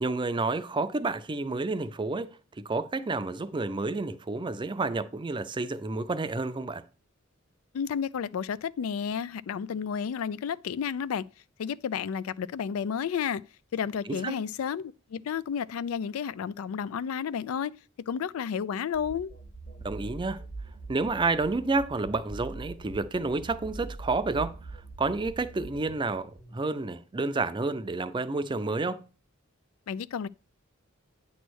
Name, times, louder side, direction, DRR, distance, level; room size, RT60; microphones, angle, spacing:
voice 1, 0.0-2.4 2.6-6.8 14.2-14.4 19.8-20.4 20.9-24.5 25.0-29.0, right 3 dB, 25° right, 0.5 m, -30 dB
voice 2, 7.7-11.3 11.6-13.4 13.7-17.7 18.1-19.3 29.9-30.3, left 7 dB, 85° left, 0.3 m, -31 dB
sound 1, 18.9-26.6, right 3 dB, 45° left, 1.4 m, -43 dB
9.0 x 3.1 x 6.2 m
head